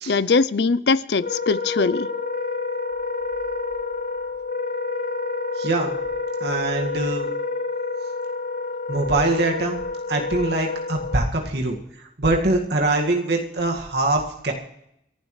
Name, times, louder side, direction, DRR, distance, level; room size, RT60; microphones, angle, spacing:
voice 1, 0.1-2.1, left 4 dB, 70° left, 17 dB, 0.6 m, -21 dB
Wind instrument woodwind instrument, 1.1-11.2, left 4 dB, 45° left, 1.1 m, -28 dB
voice 2, 5.6-5.9 6.4-7.3 8.9-9.8 10.1-11.8 12.2-14.5, right 2 dB, 65° right, 1 dB, 2.0 m, -23 dB
29.0 x 11.5 x 3.3 m, 0.78 s
head